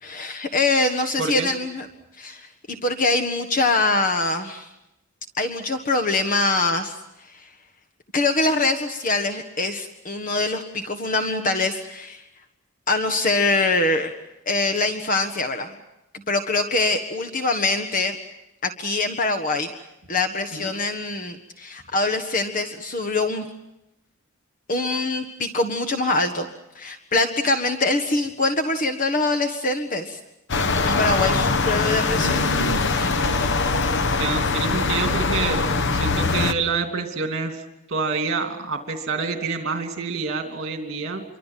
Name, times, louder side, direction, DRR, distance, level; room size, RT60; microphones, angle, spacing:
voice 1, 0.0-1.9 2.2-4.7 5.4-7.0 7.3-7.5 8.1-12.2 12.9-14.1 14.4-15.8 16.3-18.2 18.6-19.7 20.1-23.4 24.7-26.5 26.7-30.2 30.8-32.4 32.9-33.4, left 2 dB, 40° left, 6 dB, 1.5 m, -24 dB
sound 1, 30.5-36.5, left 3 dB, 55° left, 1.1 m, -22 dB
voice 2, 34.2-37.6 37.9-41.2, right 4 dB, 50° right, 4 dB, 3.0 m, -27 dB
27.5 x 24.0 x 7.6 m, 0.89 s
head